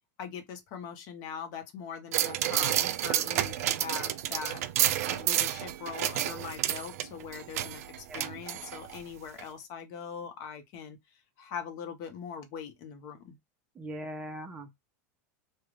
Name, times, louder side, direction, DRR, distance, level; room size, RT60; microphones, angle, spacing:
voice 1, 0.2-4.6 5.0-7.8 8.1-11.0 11.4-13.4, left 7 dB, 45° left, 0.8 m, -41 dB
sound 1, 2.1-9.0 9.4-9.5, right 12 dB, 80° right, 0.3 m, -30 dB
voice 2, 13.8-14.8, right 1 dB, 15° right, 0.6 m, -40 dB
2.4 x 2.2 x 3.1 m
supercardioid pair, 145°, 8 cm